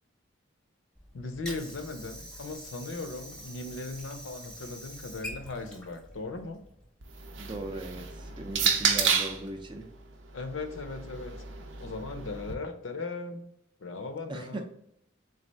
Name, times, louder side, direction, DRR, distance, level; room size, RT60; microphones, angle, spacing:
Water / Sink (filling or washing), 1.0-7.0, equal, 5° left, 0.7 m, -45 dB
voice 1, 1.1-6.6 10.3-11.4 11.8-13.5 13.8-14.6, left 3 dB, 75° left, 8 dB, 0.6 m, -38 dB
sound 1, 7.0-9.5 10.4-12.5, right 6 dB, 75° right, 0.6 m, -30 dB
voice 2, 7.4-9.9 14.3-14.6, right 2 dB, 25° right, 6 dB, 0.4 m, -38 dB
4.0 x 3.5 x 3.3 m, 0.74 s
head